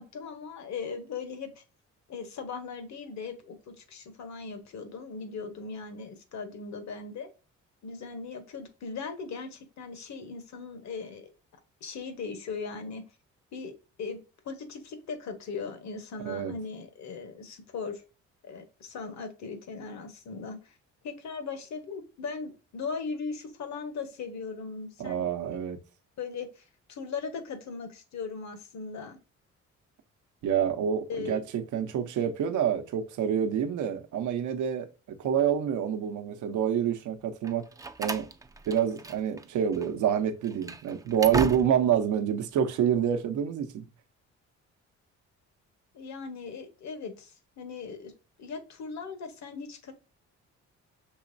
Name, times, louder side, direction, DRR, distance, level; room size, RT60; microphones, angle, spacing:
voice 1, 0.0-1.6 2.1-7.3 7.8-11.3 11.8-13.0 13.5-14.2 14.4-18.0 18.4-20.7 21.0-25.6 26.2-29.2 31.1-31.4 45.9-48.1 48.4-49.9, left 5 dB, 65° left, 1.2 m, -39 dB
voice 2, 25.0-25.8 30.4-37.7 38.0-38.3 38.7-43.9, right 8 dB, 75° right, 0.8 m, -27 dB
Slam, 37.4-39.5 39.7-39.9 40.4-42.0, right 3 dB, 10° right, 0.4 m, -36 dB
6.2 x 3.0 x 2.6 m
cardioid pair, 90°, 30 cm